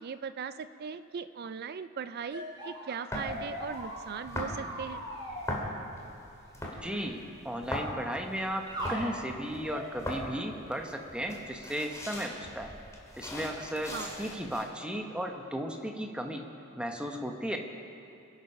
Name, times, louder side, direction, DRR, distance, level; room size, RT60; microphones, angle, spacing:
voice 1, 0.0-5.0 13.9-14.1, right 6 dB, 50° right, 13 dB, 0.4 m, -39 dB
sound 1, 2.3-5.4 6.7-7.0 8.7-9.0 9.6-9.9, equal, 20° right, 4.1 m, -40 dB
sound 2, 3.1-14.6, left 1 dB, 15° left, 2.5 m, -40 dB
voice 2, 6.8-12.7 13.2-16.4 16.8-17.6, equal, 5° right, 3 dB, 1.1 m, -35 dB
25.0 x 8.9 x 5.7 m, 2.7 s
head